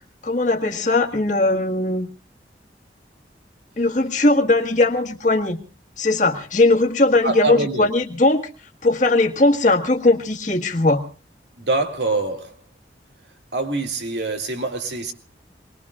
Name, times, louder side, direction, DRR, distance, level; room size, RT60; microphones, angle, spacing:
voice 1, 0.2-2.1 3.8-5.6 6.0-8.4 8.8-11.0, left 2 dB, 45° left, 1.6 m, -19 dB
voice 2, 7.2-7.9 11.6-12.5 13.5-15.1, right 2 dB, 75° right, 2.3 m, -24 dB
26.5 x 21.0 x 2.4 m
head